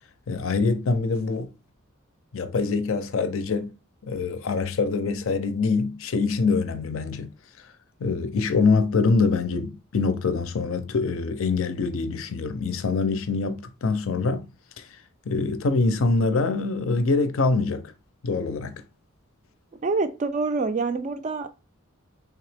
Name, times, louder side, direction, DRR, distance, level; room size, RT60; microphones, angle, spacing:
voice 1, 0.3-1.5 2.3-3.7 4.0-7.3 8.0-14.5 14.8-14.9 15.3-17.9 18.2-18.8, left 4 dB, 65° left, 0.5 m, -24 dB
voice 2, 19.8-21.5, right 3 dB, 35° right, 0.3 m, -26 dB
3.3 x 2.8 x 3.3 m
head